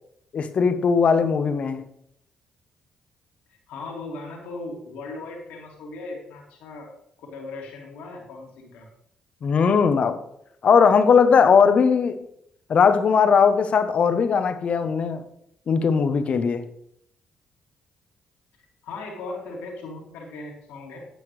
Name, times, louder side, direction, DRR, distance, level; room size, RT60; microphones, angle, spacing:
voice 1, 0.3-1.8 9.4-10.2 10.6-12.2 12.7-15.2 15.7-16.7, left 6 dB, 55° left, 0.9 m, -19 dB
voice 2, 3.5-6.9 7.2-8.9 18.8-21.0, left 3 dB, 75° left, 2.3 m, -38 dB
9.2 x 8.7 x 3.2 m
hypercardioid pair, 50°, 2 cm